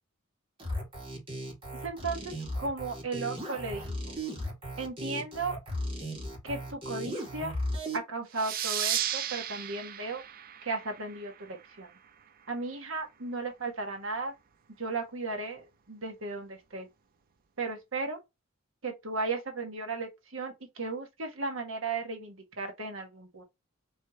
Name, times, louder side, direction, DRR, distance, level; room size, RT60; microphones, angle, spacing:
sound 1, 0.6-8.0, equal, 25° right, 1.8 m, -36 dB
voice 1, 1.8-4.1 4.8-5.6 6.4-7.5 7.9-10.2 10.6-11.9 12.5-14.3 14.8-16.9 17.6-18.2 18.8-23.4, right 3 dB, 70° right, 1.4 m, -35 dB
sound 2, 8.4-11.6, right 10 dB, 45° right, 0.4 m, -34 dB
4.6 x 3.2 x 2.9 m
head